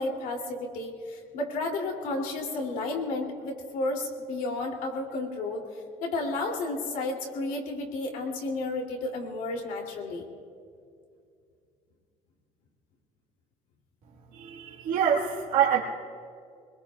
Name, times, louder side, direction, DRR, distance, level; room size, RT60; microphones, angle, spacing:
voice 1, 0.0-5.6 6.0-10.3, left 2 dB, 75° left, 1 dB, 2.8 m, -32 dB
voice 2, 14.3-15.8, right 8 dB, 70° right, -5 dB, 1.7 m, -25 dB
26.0 x 21.0 x 2.4 m, 2.3 s
cardioid pair, 175°, 14 cm